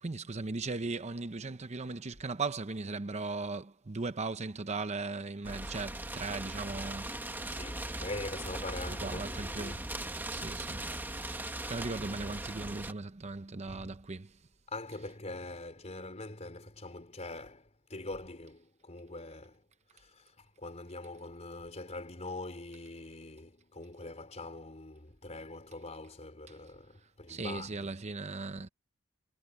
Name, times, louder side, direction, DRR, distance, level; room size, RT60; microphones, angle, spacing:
voice 1, 0.0-7.2 9.0-9.9 10.3-14.4 26.5-26.6 27.3-28.7, right 3 dB, 35° right, 0.7 m, -38 dB
sound 1, 5.4-12.9, right 1 dB, 10° right, 1.3 m, -39 dB
voice 2, 7.5-9.8 13.6-14.0 14.7-19.6 19.9-27.9, left 2 dB, 35° left, 3.8 m, -43 dB
head